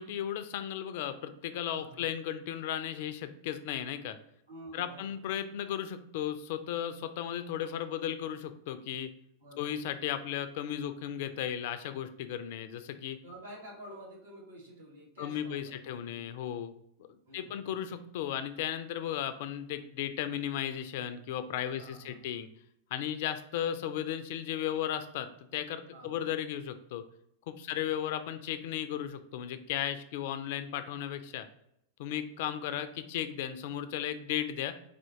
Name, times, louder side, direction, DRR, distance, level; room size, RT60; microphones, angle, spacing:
voice 1, 0.0-4.2 4.7-9.1 9.6-13.2 15.2-16.7 17.3-22.5 22.9-27.0 27.5-31.5 32.0-34.7, left 10 dB, 50° left, 10 dB, 0.3 m, -35 dB
voice 2, 1.7-2.0 4.5-5.2 9.4-9.8 13.2-16.5 17.3-18.0 21.7-22.3 25.9-26.2 27.7-27.9, right 1 dB, 70° right, -3 dB, 1.5 m, -50 dB
4.3 x 2.5 x 3.5 m, 0.77 s
figure-of-eight pair, 90°, 0 cm